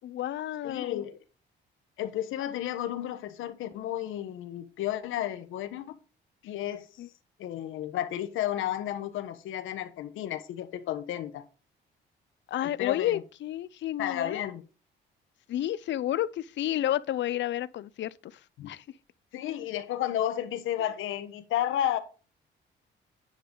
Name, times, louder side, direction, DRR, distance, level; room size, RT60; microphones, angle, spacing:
voice 1, 0.0-1.0 7.0-7.1 12.5-14.5 15.5-18.3 18.7-18.8, left 12 dB, 65° left, 0.6 m, -31 dB
voice 2, 0.6-1.2 2.0-6.0 6.4-6.9 7.4-11.4 12.6-13.2 14.0-14.6 18.6-18.7 19.3-22.0, left 12 dB, 85° left, 1.1 m, -32 dB
10.0 x 6.8 x 3.9 m
cardioid pair, 90°, 20 cm